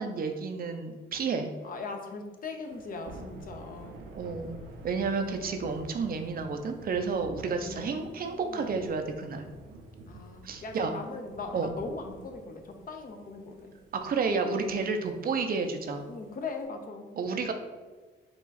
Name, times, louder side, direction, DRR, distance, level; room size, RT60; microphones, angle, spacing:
voice 1, 0.0-1.5 4.1-4.6 4.8-9.5 10.4-10.9 11.5-11.7 13.9-16.1 17.2-17.5, right 4 dB, 50° right, 6 dB, 0.5 m, -31 dB
voice 2, 1.6-3.9 7.6-8.7 10.1-13.7 16.1-17.1, left 4 dB, 45° left, 4 dB, 0.6 m, -40 dB
Thunder / Rain, 2.6-16.6, right 2 dB, 90° right, 0.6 m, -49 dB
4.8 x 2.4 x 4.0 m, 1.3 s
cardioid pair, 90°, 20 cm